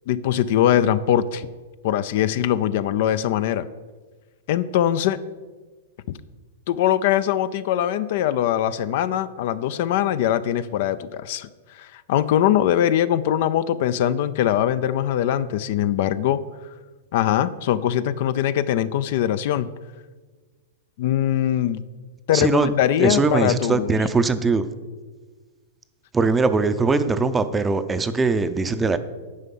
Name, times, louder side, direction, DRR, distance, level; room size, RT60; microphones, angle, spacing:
voice 1, 0.1-1.5 1.8-3.7 4.5-5.2 6.1-6.2 6.7-11.5 11.7-16.4 17.1-19.7 21.0-21.8 22.3-23.9, left 11 dB, 60° left, 15 dB, 0.4 m, -22 dB
voice 2, 22.3-22.7 23.0-24.7 26.1-29.0, right 4 dB, 15° right, 11 dB, 0.5 m, -21 dB
9.7 x 5.6 x 5.5 m, 1.4 s
hypercardioid pair, 125°, 0 cm